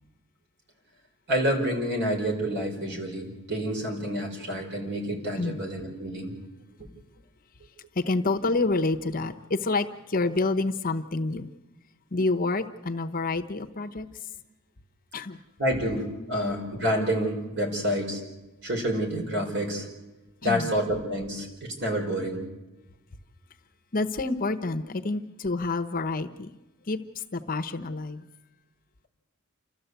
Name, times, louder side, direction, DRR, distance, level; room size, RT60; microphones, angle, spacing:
voice 1, 1.3-6.3 15.6-18.2 18.6-19.9 20.4-22.4, equal, 50° right, 1 dB, 5.3 m, -28 dB
voice 2, 7.9-11.5 12.1-14.1 15.1-15.4 20.4-20.7 23.9-26.5 26.9-28.2, left 3 dB, 40° left, 7 dB, 0.9 m, -28 dB
29.5 x 13.5 x 8.2 m, 1.1 s
head